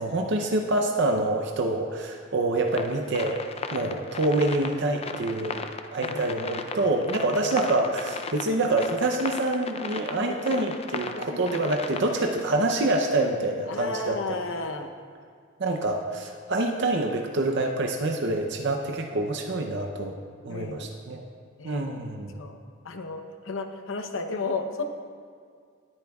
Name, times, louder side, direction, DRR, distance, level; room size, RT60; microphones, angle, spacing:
voice 1, 0.0-3.4 3.7-14.4 15.6-20.2 20.4-21.2 21.6-22.4, right 2 dB, 60° right, 3 dB, 0.7 m, -26 dB
sound 1, 2.7-12.4, left 4 dB, 30° left, 0.4 m, -36 dB
voice 2, 13.7-14.9 20.5-20.9 21.5-21.8 22.3-22.6 22.8-24.8, left 3 dB, 80° left, 6 dB, 0.8 m, -33 dB
19.5 x 8.8 x 2.4 m, 2.1 s
head